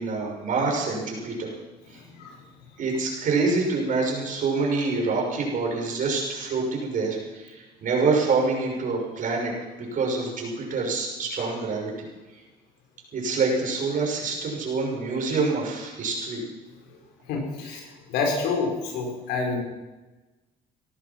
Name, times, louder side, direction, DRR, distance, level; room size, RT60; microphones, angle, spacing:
voice 1, 0.0-1.5 2.8-9.5 9.9-12.1 13.1-16.4, right 4 dB, 50° right, -1 dB, 6.3 m, -26 dB
voice 2, 1.9-2.4 17.3-19.6, left 4 dB, 90° left, 2 dB, 5.0 m, -28 dB
18.5 x 13.0 x 6.0 m, 1.1 s
cardioid pair, 110°, 17 cm